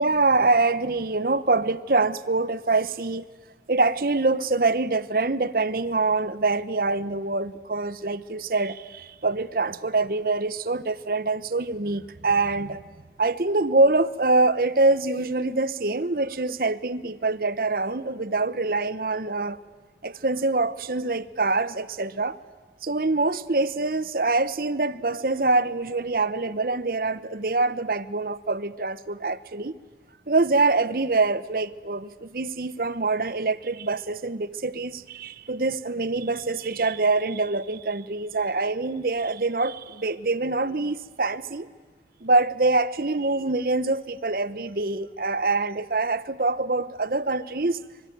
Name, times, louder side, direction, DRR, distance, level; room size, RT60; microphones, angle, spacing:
voice 1, 0.0-3.3 3.7-12.8 13.2-19.6 20.0-22.4 22.8-29.7 30.3-41.7 42.2-47.8, right 3 dB, 55° right, 0.9 m, -25 dB
25.0 x 24.5 x 9.4 m
head